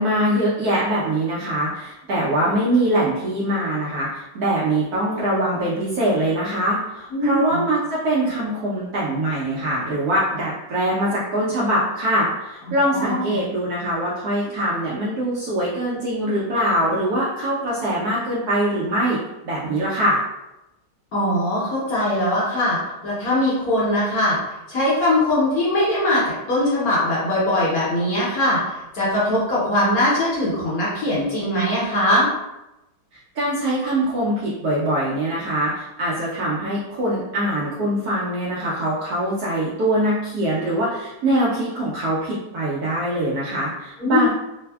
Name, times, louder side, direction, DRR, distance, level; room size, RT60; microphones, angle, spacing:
voice 1, 0.0-20.2 33.3-44.3, right 1 dB, 70° right, -7 dB, 0.9 m, -23 dB
voice 2, 7.1-7.6 12.9-13.4 21.1-22.8 23.0-24.4 24.7-32.3 44.0-44.3, left 1 dB, 60° left, -7 dB, 1.0 m, -21 dB
3.3 x 2.0 x 2.2 m, 0.93 s
omnidirectional pair, 2.1 m